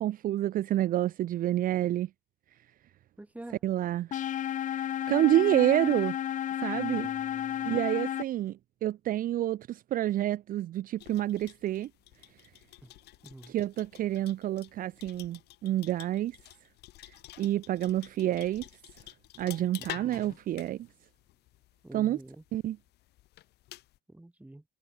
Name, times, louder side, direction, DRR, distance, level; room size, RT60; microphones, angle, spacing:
voice 1, 0.0-2.1 3.6-4.1 4.7-6.2 6.6-7.1 7.6-11.9 13.5-16.4 17.4-18.7 19.4-20.9 21.9-22.2 22.5-22.8, right 13 dB, 55° right, 0.6 m, -28 dB
voice 2, 3.2-3.6 6.7-7.7 12.8-12.9 13.2-13.6 20.0-20.4 21.8-22.4 24.1-24.6, right 1 dB, 10° right, 4.6 m, -48 dB
sound 1, 4.1-8.2, left 11 dB, 50° left, 0.7 m, -32 dB
sound 2, 11.0-24.0, left 16 dB, 75° left, 1.3 m, -50 dB
cardioid pair, 110°, 17 cm